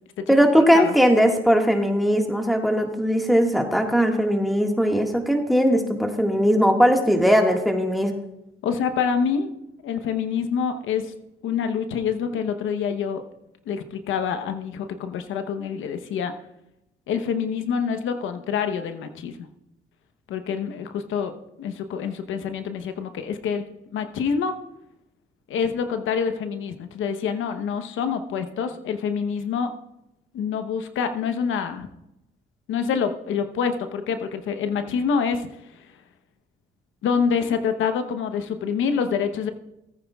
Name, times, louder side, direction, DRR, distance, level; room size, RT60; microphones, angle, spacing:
voice 1, 0.3-8.1, equal, ahead, 2 dB, 1.7 m, -19 dB
voice 2, 8.6-9.5 9.8-11.1 11.4-13.2 13.7-16.3 17.1-19.4 20.3-21.3 21.6-24.6 25.5-29.7 30.3-31.9 32.7-35.5 37.0-39.5, left 6 dB, 80° left, 8 dB, 0.9 m, -26 dB
18.0 x 9.3 x 2.4 m, 0.86 s
cardioid pair, 90°, 20 cm